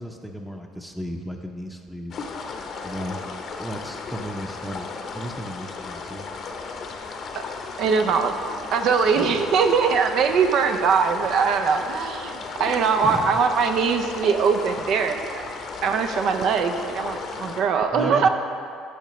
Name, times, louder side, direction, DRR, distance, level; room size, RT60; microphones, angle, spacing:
voice 1, 0.0-2.2 2.8-3.3 3.6-4.9 5.1-6.3 9.1-9.4 13.0-13.3 17.9-18.3, equal, 5° right, 2 dB, 0.6 m, -34 dB
sound 1, 2.1-17.6, left 4 dB, 50° left, 0.7 m, -35 dB
voice 2, 7.8-15.4 15.8-18.3, right 5 dB, 65° right, 7 dB, 0.4 m, -22 dB
10.5 x 5.6 x 3.1 m, 2.4 s
supercardioid pair, 95°, 0 cm